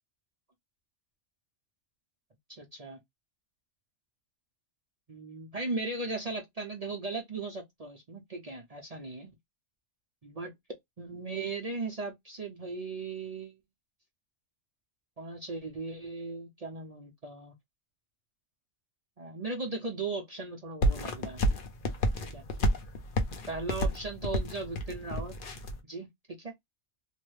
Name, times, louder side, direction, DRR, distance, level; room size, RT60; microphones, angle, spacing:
voice 1, 2.5-3.0 5.1-9.3 10.2-10.5 11.0-13.6 15.2-17.5 19.2-21.4 22.2-22.4 23.5-25.3 25.8-26.5, right 3 dB, 40° right, 0.6 m, -37 dB
sound 1, 20.8-25.8, equal, 55° left, 0.8 m, -30 dB
3.0 x 2.1 x 3.2 m
omnidirectional pair, 1.2 m